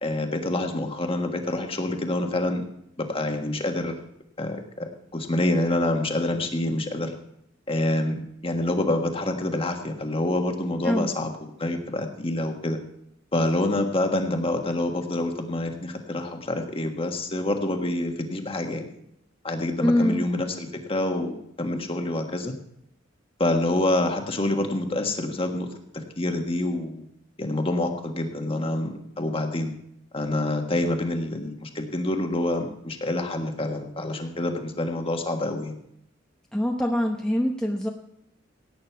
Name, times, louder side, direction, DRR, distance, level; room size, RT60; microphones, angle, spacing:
voice 1, 0.0-2.6 3.0-4.0 4.4-7.2 7.7-12.8 13.3-18.9 19.4-22.5 23.4-25.7 26.2-27.1 27.4-29.7 30.1-35.7, left 1 dB, 30° left, 4 dB, 1.5 m, -27 dB
voice 2, 19.8-20.2 36.5-37.9, left 1 dB, 5° left, 0 dB, 0.9 m, -24 dB
17.0 x 9.0 x 4.6 m, 0.75 s
head